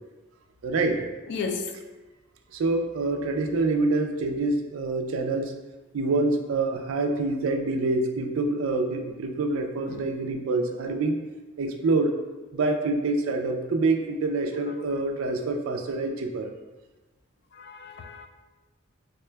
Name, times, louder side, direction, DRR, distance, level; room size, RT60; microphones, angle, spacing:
voice 1, 0.6-1.0 2.5-5.5 5.9-11.2 11.6-12.1 12.5-16.5, right 3 dB, 80° right, 4 dB, 0.4 m, -26 dB
voice 2, 1.3-1.7 9.9-10.0 17.5-18.3, left 4 dB, 55° left, 5 dB, 0.3 m, -33 dB
3.6 x 2.2 x 3.2 m, 1.2 s
head